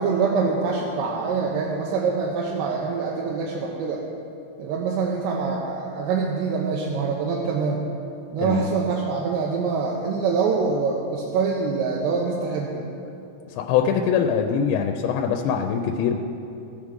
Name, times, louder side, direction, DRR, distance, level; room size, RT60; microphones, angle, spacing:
voice 1, 0.0-4.0 4.6-7.8 8.3-12.9, right 5 dB, 85° right, -2 dB, 2.9 m, -25 dB
voice 2, 8.4-8.7 13.5-16.2, left 7 dB, 85° left, 4 dB, 2.7 m, -23 dB
17.0 x 6.2 x 3.7 m, 2.8 s
omnidirectional pair, 5.0 m